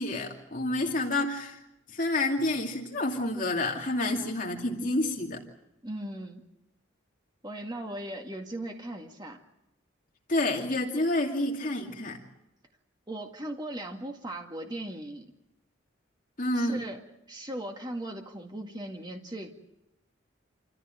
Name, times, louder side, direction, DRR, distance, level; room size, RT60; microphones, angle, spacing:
voice 1, 0.0-1.6 1.9-5.4 10.3-12.2 16.4-16.8, left 2 dB, 45° left, 1 dB, 2.6 m, -29 dB
voice 2, 5.8-6.5 7.4-9.4 13.1-15.3 16.5-17.0 17.3-19.5, right 1 dB, 20° right, 2 dB, 2.0 m, -38 dB
28.0 x 14.5 x 9.1 m, 0.89 s
head